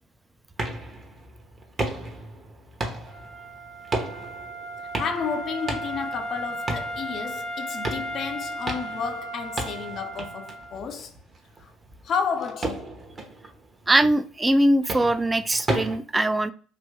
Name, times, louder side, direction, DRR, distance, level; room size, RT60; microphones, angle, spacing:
sound 1, 0.6-16.0, right 2 dB, 35° right, 0.9 m, -35 dB
Wind instrument woodwind instrument, 3.0-10.9, right 1 dB, 60° right, 1.0 m, -35 dB
voice 1, 5.0-11.1 11.6-11.7 12.0-13.0, left 6 dB, 50° left, 0.4 m, -31 dB
voice 2, 13.9-16.5, right 1 dB, 15° right, 0.3 m, -21 dB
2.8 x 2.6 x 3.3 m
hypercardioid pair, 60°, 0 cm